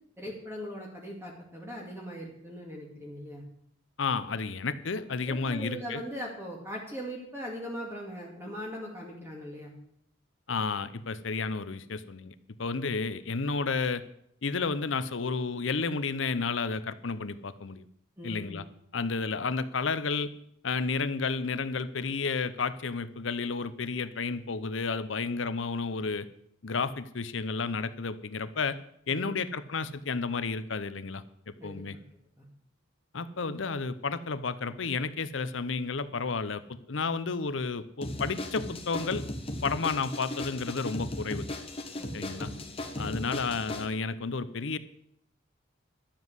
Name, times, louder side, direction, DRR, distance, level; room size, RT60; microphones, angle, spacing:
voice 1, 0.2-3.4 5.2-9.7 18.2-18.6 29.1-29.4 31.6-31.8 32.4-32.5 42.0-42.5 43.0-43.3, equal, 15° right, -2 dB, 2.2 m, -40 dB
voice 2, 4.0-6.0 10.5-14.0 14.4-17.8 18.2-18.6 18.9-20.3 20.6-26.3 26.6-28.8 29.1-31.2 31.6-32.0 33.1-39.2 39.6-41.5 42.1-42.5 43.0-44.8, left 4 dB, 70° left, 13 dB, 0.8 m, -31 dB
sound 1, 38.0-43.9, left 1 dB, 30° left, 1.3 m, -37 dB
12.0 x 7.3 x 8.0 m, 0.72 s
head